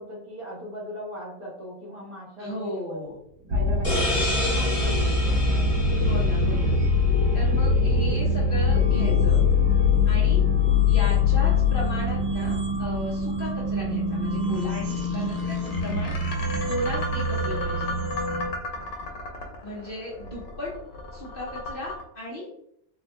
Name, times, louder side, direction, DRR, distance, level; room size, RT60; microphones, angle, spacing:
voice 1, 0.0-3.0 3.4-6.2 10.3-10.6 18.7-19.2, equal, 25° right, -4 dB, 0.7 m, -40 dB
voice 2, 2.4-3.1 4.8-5.1 6.0-6.7 7.3-9.4 10.0-10.4 10.9-16.2 16.6-17.9 19.6-20.7 21.1-22.5, left 1 dB, 55° left, -5 dB, 0.6 m, -35 dB
sound 1, 3.1-13.0 14.4-22.0, left 2 dB, 80° left, 1.3 m, -36 dB
sound 2, 3.5-18.5, left 4 dB, 75° right, 1.2 m, -23 dB
sound 3, 3.8-7.3, left 2 dB, 20° left, 1.1 m, -30 dB
3.4 x 2.2 x 3.4 m, 0.70 s
omnidirectional pair, 1.9 m